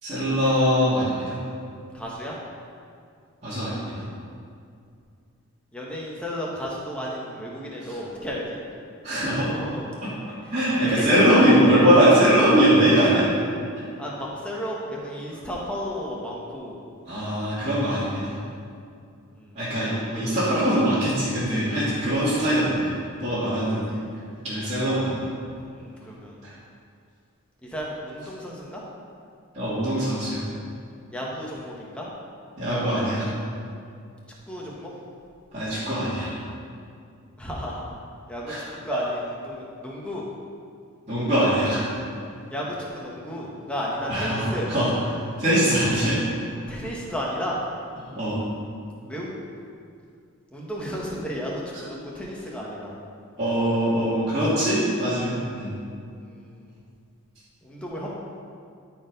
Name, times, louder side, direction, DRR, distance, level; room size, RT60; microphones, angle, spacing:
voice 1, 0.0-1.4 3.4-4.0 9.0-9.5 10.0-10.1 10.5-13.3 17.1-18.3 19.5-22.9 23.2-23.9 24.4-25.3 26.4-26.5 29.5-30.4 32.6-33.3 35.5-36.3 38.5-38.6 41.1-41.8 44.1-44.4 44.7-44.9 45.4-46.2 48.1-48.4 53.4-55.7, equal, 30° right, -13 dB, 2.5 m, -21 dB
voice 2, 1.9-2.4 5.7-8.6 9.4-9.9 10.4-10.5 10.8-11.6 14.0-16.8 19.3-19.9 25.6-26.4 27.6-28.8 31.1-32.1 34.5-34.9 37.4-37.8 38.3-40.2 42.5-44.7 46.7-47.6 49.0-49.4 50.5-52.9 55.2-55.4 56.2-56.8 57.6-58.1, equal, 5° left, -4 dB, 1.4 m, -33 dB
12.5 x 4.7 x 5.3 m, 2.3 s
head